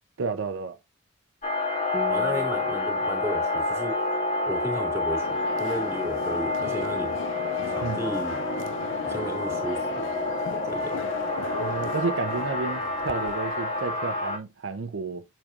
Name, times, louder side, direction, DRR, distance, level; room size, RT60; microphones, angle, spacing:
voice 1, 0.2-0.8 7.8-8.0 11.5-15.2, right 4 dB, 80° right, 0.6 m, -31 dB
sound 1, 1.4-14.4, left 2 dB, 40° left, 2.0 m, -28 dB
Piano, 1.9-11.3, right 2 dB, 10° left, 1.4 m, -46 dB
voice 2, 2.1-4.0 4.4-5.3 5.6-7.2 7.7-8.4 9.0-10.1 10.6-11.0, equal, 15° right, 2.2 m, -33 dB
sound 2, 5.2-13.9, left 5 dB, 70° left, 0.5 m, -39 dB
7.2 x 6.6 x 2.5 m
head